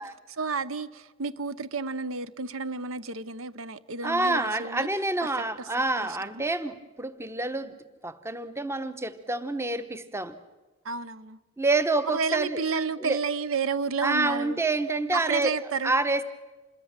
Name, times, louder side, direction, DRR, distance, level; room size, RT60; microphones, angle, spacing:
voice 1, 0.3-4.9 6.0-6.4 10.8-11.4 12.0-14.6 15.1-15.9, right 4 dB, 70° right, 0.8 m, -31 dB
voice 2, 4.0-7.8 8.0-10.4 11.6-12.6 13.0-13.2 14.0-15.5 15.8-16.2, right 2 dB, 10° right, 0.9 m, -27 dB
27.0 x 21.5 x 7.4 m
head